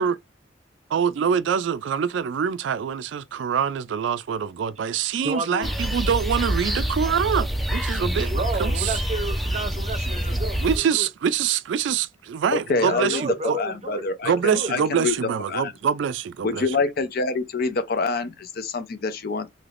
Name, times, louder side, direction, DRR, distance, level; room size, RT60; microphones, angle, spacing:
voice 1, 0.9-8.3 8.6-9.0 10.6-13.6 14.2-16.8, right 7 dB, 65° right, 0.3 m, -25 dB
voice 2, 5.2-5.8 8.2-11.1 12.8-14.7, right 2 dB, 35° right, 0.7 m, -31 dB
sound 1, 5.6-10.8, equal, ahead, 0.4 m, -26 dB
voice 3, 12.5-13.2 13.5-15.1 15.5-15.7 16.4-19.5, left 4 dB, 50° left, 0.5 m, -26 dB
3.3 x 2.8 x 2.4 m
head